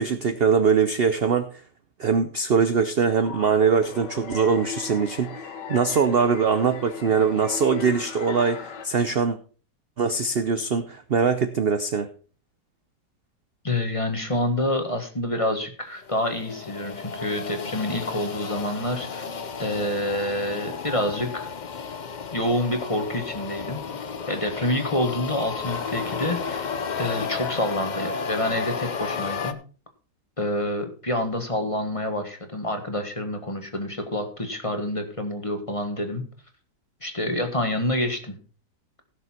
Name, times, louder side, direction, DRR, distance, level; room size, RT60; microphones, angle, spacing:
voice 1, 0.0-1.5 2.0-9.4 10.0-12.1, right 5 dB, 55° right, 10 dB, 0.7 m, -22 dB
sound 1, 3.1-8.9, left 6 dB, 75° left, 2.0 m, -37 dB
voice 2, 13.6-19.3 19.6-21.5 22.3-23.8 24.3-29.6 30.4-36.2 37.0-38.4, left 1 dB, 20° left, 5 dB, 1.5 m, -27 dB
sound 2, 16.0-29.5, left 5 dB, 55° left, 0.4 m, -33 dB
16.5 x 6.7 x 4.4 m, 0.39 s
omnidirectional pair, 1.9 m